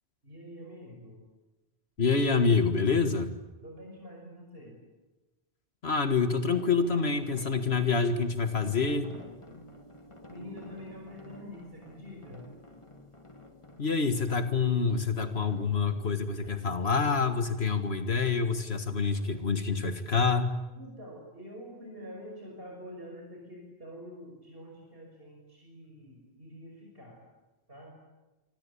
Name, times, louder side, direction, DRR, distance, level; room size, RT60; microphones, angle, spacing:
voice 1, 0.2-1.2 3.6-4.8 10.3-12.5 20.7-27.2 27.7-27.9, left 1 dB, 65° right, 0 dB, 6.0 m, -46 dB
voice 2, 2.0-3.3 5.8-9.1 13.8-20.6, left 5 dB, 75° left, 7 dB, 2.0 m, -27 dB
sound 1, 6.5-20.0, equal, 30° left, 2.4 m, -51 dB
25.5 x 25.0 x 8.6 m, 1.1 s
omnidirectional pair, 1.1 m